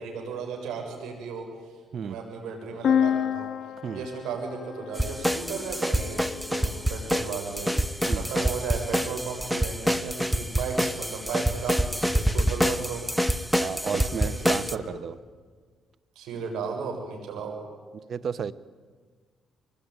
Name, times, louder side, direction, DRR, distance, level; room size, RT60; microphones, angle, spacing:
voice 1, 0.0-1.7 2.0-3.5 3.9-13.0 13.9-14.8 16.2-17.6, right 5 dB, 90° right, 2 dB, 7.2 m, -35 dB
sound 1, 2.8-6.6, left 8 dB, 60° left, 0.9 m, -29 dB
sound 2, 5.0-14.7, equal, ahead, 1.0 m, -26 dB
voice 2, 13.6-15.1 18.1-18.5, right 7 dB, 55° right, 17 dB, 0.9 m, -32 dB
25.0 x 21.0 x 9.7 m, 1.5 s
cardioid pair, 90°, 0 cm